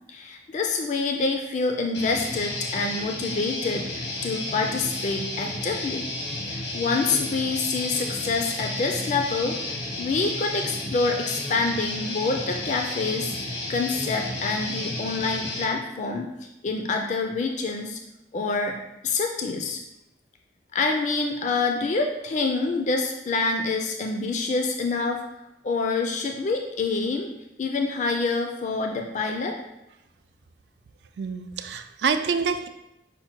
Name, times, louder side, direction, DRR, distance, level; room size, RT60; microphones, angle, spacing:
voice 1, 0.1-6.1 6.5-16.3 16.6-18.0 18.3-18.8 19.0-19.8 20.7-25.2 25.6-27.3 27.6-29.6, left 3 dB, 40° left, 3 dB, 0.4 m, -27 dB
Guitar, 1.9-15.6, left 2 dB, 85° left, 1.0 m, -32 dB
voice 2, 31.2-32.7, right 5 dB, 65° right, 9 dB, 0.3 m, -26 dB
5.6 x 2.1 x 4.4 m, 0.88 s
head